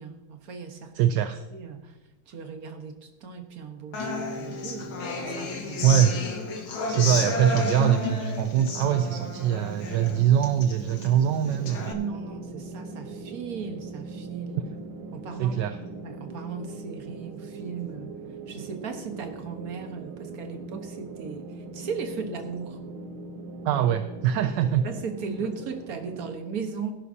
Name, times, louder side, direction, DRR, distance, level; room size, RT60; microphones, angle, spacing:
voice 1, 0.0-1.2 1.5-2.0 2.3-5.0 5.2-6.0 6.5-6.9 11.8-14.6 15.1-15.6 16.0-18.2 18.5-22.8 24.8-26.9, right 5 dB, 50° right, 6 dB, 1.6 m, -37 dB
voice 2, 0.9-1.4 5.8-6.1 6.9-11.9 15.4-15.8 23.6-24.8, right 10 dB, 75° right, 9 dB, 1.1 m, -23 dB
Human voice / Acoustic guitar, 3.9-11.9, left 3 dB, 85° left, 2.3 m, -32 dB
sound 1, 8.5-26.3, right 3 dB, 90° right, 1.8 m, -40 dB
17.5 x 11.0 x 2.8 m, 1.0 s
omnidirectional pair, 2.2 m